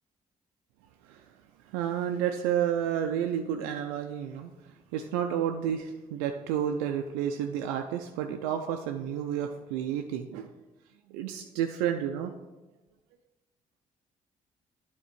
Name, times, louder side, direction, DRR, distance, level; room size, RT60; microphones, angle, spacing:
voice 1, 1.6-4.5 4.9-10.5 11.1-12.3, right 9 dB, 75° right, 5 dB, 0.4 m, -31 dB
9.2 x 3.6 x 5.9 m, 1.1 s
hypercardioid pair, 45°, 18 cm